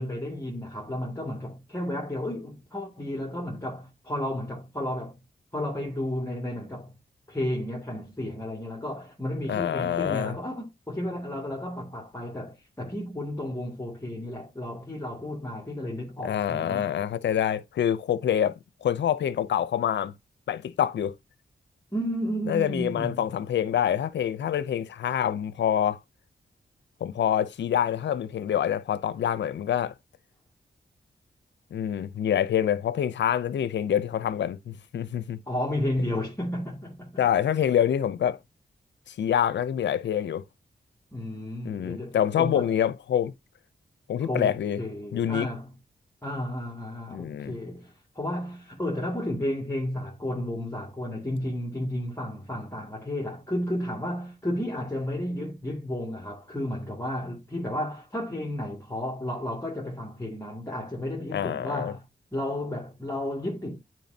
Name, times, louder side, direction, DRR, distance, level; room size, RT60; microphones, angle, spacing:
voice 1, 0.0-5.2 5.5-6.9 7.3-16.9 21.9-23.3 35.5-37.2 41.1-42.7 44.2-45.7 46.2-62.0 62.3-63.8, left 1 dB, 15° left, 2.3 m, -32 dB
voice 2, 9.5-10.3 16.2-18.5 18.8-20.1 20.5-21.2 22.5-26.0 27.0-29.9 31.7-35.4 36.0-36.1 37.2-38.4 39.1-40.4 41.6-43.3 44.1-44.8 45.1-45.5 47.1-47.6 61.3-61.9, left 9 dB, 85° left, 0.6 m, -26 dB
9.3 x 4.5 x 2.8 m
cardioid pair, 50°, 18 cm